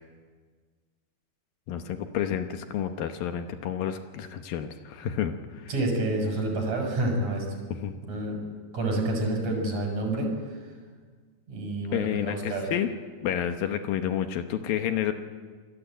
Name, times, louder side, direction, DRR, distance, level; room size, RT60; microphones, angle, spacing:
voice 1, 1.7-5.7 7.7-7.9 11.9-12.9 13.2-15.1, left 9 dB, 70° left, 7 dB, 2.3 m, -30 dB
voice 2, 5.7-7.5 8.1-8.4 8.7-10.3 11.5-12.7, right 2 dB, 35° right, 2 dB, 7.2 m, -28 dB
27.0 x 19.5 x 9.1 m, 1.5 s
omnidirectional pair, 5.3 m